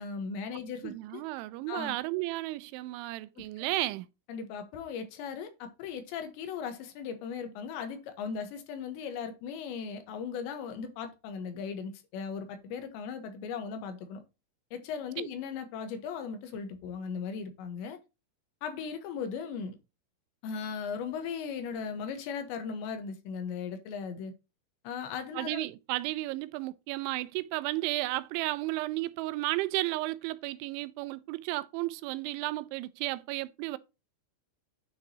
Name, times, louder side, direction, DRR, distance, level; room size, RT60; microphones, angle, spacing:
voice 1, 0.0-1.2 1.7-1.9 3.4-3.6 4.3-14.2 14.7-18.0 18.6-19.8 20.4-24.3 24.8-25.6, left 6 dB, 75° left, 3.4 m, -38 dB
voice 2, 0.8-4.1 15.2-15.3 25.4-33.8, right 18 dB, 90° right, 3.0 m, -33 dB
9.6 x 6.0 x 2.8 m
omnidirectional pair, 5.3 m